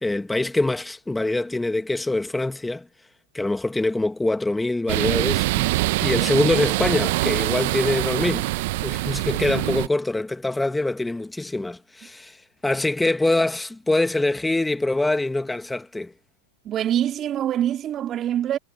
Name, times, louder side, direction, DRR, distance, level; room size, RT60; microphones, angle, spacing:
voice 1, 0.0-2.9 3.3-5.8 6.0-16.1, left 2 dB, 5° left, 1.7 m, -24 dB
sound 1, 4.9-9.9, right 20 dB, 60° right, 0.8 m, -24 dB
voice 2, 16.6-18.6, right 11 dB, 35° right, 2.7 m, -24 dB
hypercardioid pair, 100°, 0 cm